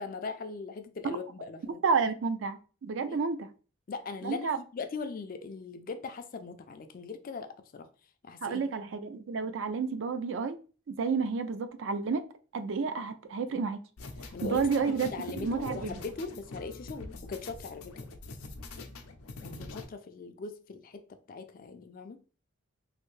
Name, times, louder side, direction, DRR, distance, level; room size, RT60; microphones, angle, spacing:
voice 1, 0.0-1.8 3.1-3.2 3.9-7.9 8.2-8.9 14.3-18.1 19.4-21.0 21.3-22.2, left 4 dB, 40° left, 0.3 m, -40 dB
voice 2, 1.8-3.5 4.2-4.6 8.4-10.6 10.9-12.2 12.5-13.8 14.4-15.9, right 5 dB, 60° right, 0.4 m, -30 dB
sound 1, 14.0-19.8, left 3 dB, 90° left, 0.5 m, -44 dB
3.2 x 2.6 x 3.1 m
head